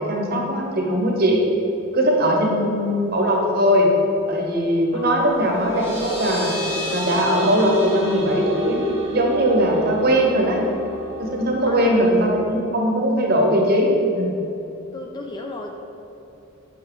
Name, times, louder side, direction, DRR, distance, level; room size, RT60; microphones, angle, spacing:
voice 1, 0.0-1.4 1.9-3.9 4.3-6.6 6.9-10.6 11.2-14.4, equal, 45° right, 0 dB, 0.9 m, -20 dB
sound 1, 5.2-12.4, left 1 dB, 10° right, 0.8 m, -28 dB
voice 2, 11.7-12.0 14.9-15.7, left 2 dB, 20° left, 2 dB, 0.3 m, -34 dB
5.7 x 5.3 x 3.8 m, 3.0 s
head